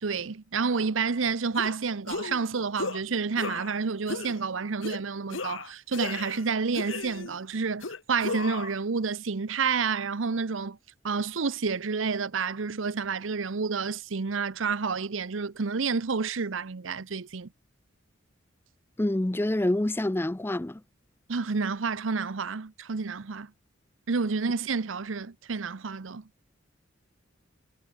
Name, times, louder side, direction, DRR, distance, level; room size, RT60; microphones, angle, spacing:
voice 1, 0.0-10.8 11.0-17.5 21.3-23.5 24.1-26.2, right 5 dB, 75° right, 0.8 m, -29 dB
sound 1, 1.6-1.7 2.1-2.4 2.8-3.0 3.4-3.8 4.1-4.4 4.8-5.0 5.3-6.4 6.7-7.4 7.8-8.8, left 3 dB, 80° left, 1.7 m, -35 dB
voice 2, 19.0-20.8, left 1 dB, 10° left, 0.4 m, -27 dB
head